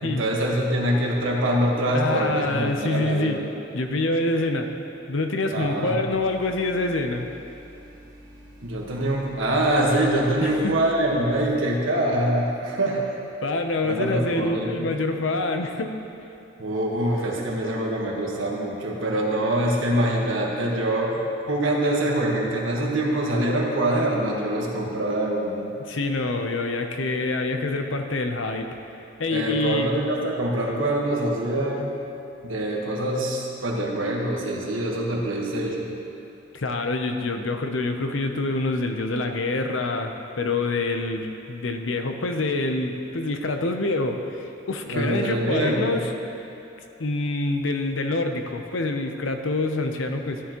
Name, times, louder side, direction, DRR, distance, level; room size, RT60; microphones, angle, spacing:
voice 1, 0.0-3.4 5.5-6.0 8.6-13.2 13.8-14.9 16.6-25.7 29.3-31.9 32.4-35.9 44.9-46.0, right 1 dB, 80° right, -1 dB, 1.5 m, -24 dB
voice 2, 1.9-3.4 3.7-4.7 5.1-7.3 10.4-10.8 13.4-15.9 25.8-28.7 29.2-29.9 36.5-46.1 47.0-50.4, left 2 dB, 75° left, 5 dB, 0.8 m, -26 dB
sound 1, 6.1-11.5, equal, 20° right, 2.3 m, -47 dB
14.0 x 9.9 x 3.1 m, 2.9 s
head